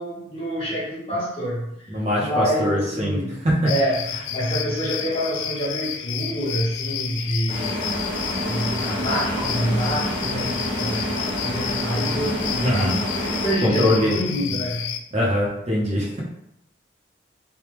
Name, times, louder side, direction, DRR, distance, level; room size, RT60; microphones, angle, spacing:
voice 1, 0.0-1.9 2.2-3.4 3.6-4.0 4.3-7.8 8.4-11.2 11.4-12.9 13.2-14.9, equal, 30° left, -7 dB, 1.2 m, -27 dB
voice 2, 1.9-3.2 3.4-3.7 12.6-13.0 13.6-14.2 15.1-16.2, left 1 dB, 35° right, -4 dB, 0.8 m, -22 dB
sound 1, 3.7-15.0, left 9 dB, 80° left, 0.3 m, -31 dB
sound 2, 7.5-14.1, equal, 85° right, 1.2 m, -28 dB
3.3 x 2.3 x 3.0 m, 0.78 s
head